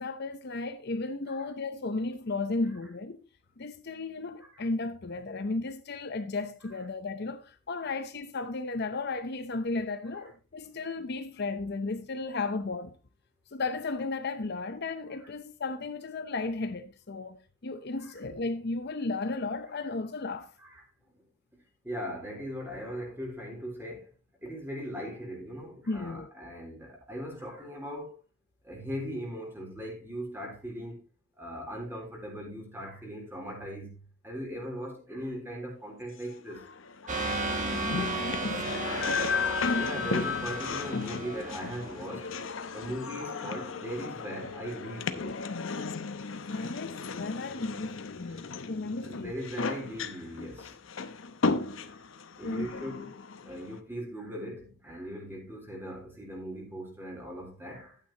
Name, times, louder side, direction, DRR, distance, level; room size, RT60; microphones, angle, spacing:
voice 1, 0.0-3.2 3.6-12.9 13.5-17.4 17.6-20.5 25.9-26.3 37.7-38.7 39.7-40.1 46.5-49.3 52.4-52.8, left 3 dB, 55° left, 0.8 m, -34 dB
voice 2, 21.8-24.1 24.4-28.2 28.6-31.0 31.4-36.7 38.3-38.4 39.8-42.4 42.7-45.4 45.6-45.9 46.5-46.7 48.3-48.4 49.0-50.7 51.7-52.0 52.4-53.1 53.4-58.0, equal, 10° right, 3.7 m, -39 dB
sound 1, 36.2-53.8, left 4 dB, 85° left, 0.8 m, -35 dB
sound 2, 37.1-42.5, right 3 dB, 40° right, 1.6 m, -35 dB
11.5 x 9.1 x 2.9 m
head